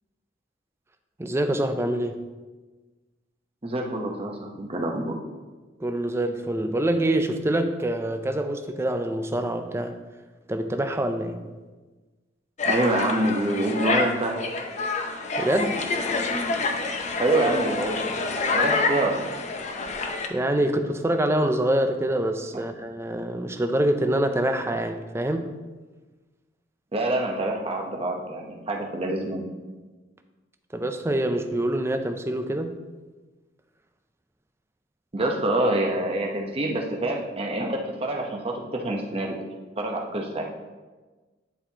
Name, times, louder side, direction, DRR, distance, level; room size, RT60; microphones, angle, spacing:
voice 1, 1.2-2.3 5.8-10.0 10.5-11.4 15.4-15.9 20.3-25.5 30.7-32.8, right 1 dB, 15° right, 7 dB, 0.4 m, -25 dB
voice 2, 3.6-5.1 12.6-14.3 17.2-18.0 18.5-19.3 22.5-22.6 26.9-29.5 35.1-39.4 39.8-40.4, right 1 dB, 30° right, 1 dB, 0.8 m, -26 dB
sound 1, 12.6-20.3, left 3 dB, 40° left, 0.5 m, -27 dB
10.0 x 4.3 x 2.8 m, 1.3 s
head